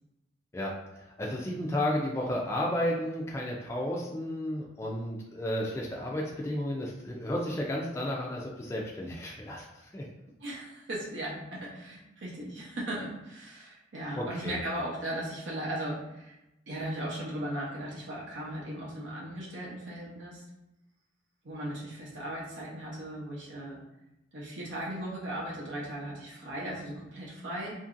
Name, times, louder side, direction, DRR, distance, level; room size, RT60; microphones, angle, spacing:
voice 1, 0.5-10.1 14.2-14.6, left 1 dB, 15° left, -3 dB, 0.3 m, -33 dB
voice 2, 10.4-16.3 16.7-20.5 21.4-23.8 24.3-27.7, right 1 dB, 75° right, -5 dB, 0.7 m, -37 dB
2.8 x 2.6 x 2.5 m, 0.93 s
head